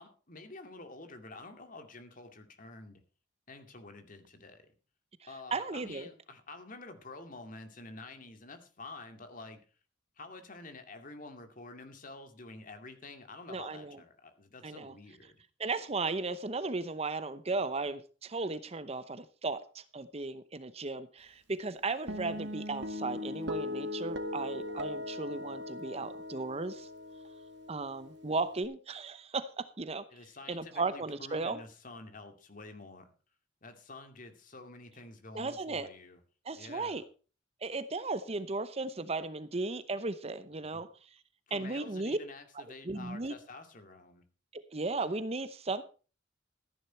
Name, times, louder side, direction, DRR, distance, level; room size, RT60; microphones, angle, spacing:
voice 1, 0.0-3.0 3.5-4.7 5.3-9.6 10.2-15.4 30.1-33.1 33.6-36.2 36.5-37.0 40.5-40.9 41.5-44.2, left 2 dB, 45° left, 2.4 m, -49 dB
voice 2, 5.5-6.1 13.5-14.0 14.6-14.9 15.6-26.9 27.7-30.0 30.5-31.6 35.3-35.9 36.4-37.0 37.6-41.1 41.5-42.2 42.8-43.3 44.5-45.8, right 3 dB, 30° right, 0.8 m, -36 dB
Guitar, 22.1-28.6, left 1 dB, 65° right, 1.9 m, -39 dB
14.5 x 10.5 x 4.4 m
head